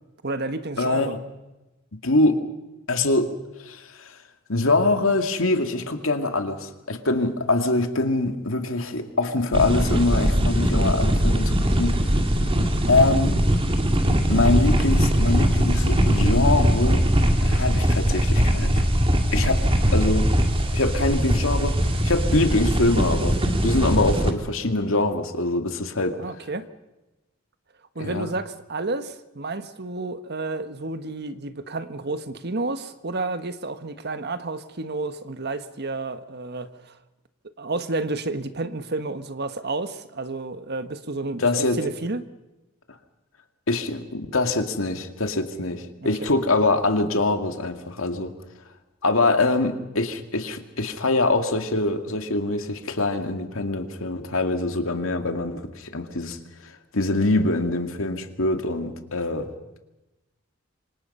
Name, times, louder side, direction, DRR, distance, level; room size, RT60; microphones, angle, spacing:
voice 1, 0.2-1.2 26.2-26.7 27.9-37.0 37.6-41.5 41.7-42.2 46.0-46.3, right 3 dB, 55° right, 1.3 m, -31 dB
voice 2, 0.8-1.2 2.0-2.4 2.9-3.3 3.6-4.1 4.5-11.9 12.9-13.4 14.3-17.0 17.4-18.8 19.3-19.6 19.9-20.3 20.7-26.2 28.0-28.3 41.4-41.8 43.7-48.3 49.0-56.4 56.9-59.5, left 2 dB, 80° left, 2.3 m, -24 dB
sound 1, 9.5-24.3, equal, 25° right, 2.0 m, -21 dB
26.5 x 25.0 x 5.6 m
head